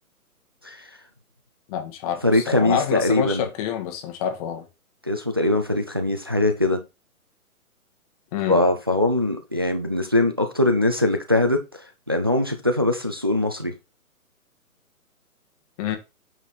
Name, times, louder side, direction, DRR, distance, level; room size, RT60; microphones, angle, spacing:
voice 1, 1.7-4.6 8.3-8.6 15.8-16.0, left 9 dB, 25° left, 1.6 m, -27 dB
voice 2, 2.2-3.5 5.0-6.8 8.5-13.7, left 1 dB, 20° right, 0.4 m, -22 dB
8.8 x 4.1 x 4.4 m
figure-of-eight pair, 130°, 44 cm